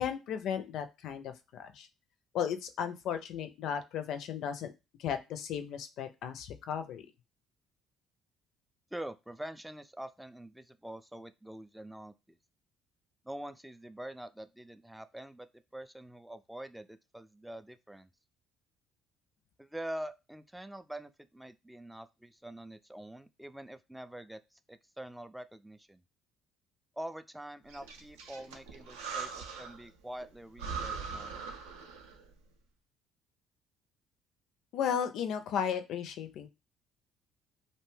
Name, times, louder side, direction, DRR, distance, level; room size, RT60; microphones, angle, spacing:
voice 1, 0.0-1.9 2.3-4.7 5.0-7.1 34.7-36.5, left 8 dB, 65° left, 8 dB, 0.4 m, -35 dB
voice 2, 8.9-12.4 13.3-15.5 15.7-18.1 19.6-26.0 27.0-31.4, right 1 dB, 5° right, 11 dB, 0.3 m, -45 dB
Breathing, 27.7-29.9 30.2-30.3 30.6-32.3, right 5 dB, 85° right, 0.5 m, -41 dB
2.6 x 2.1 x 3.2 m, 0.26 s
hypercardioid pair, 55°, 0 cm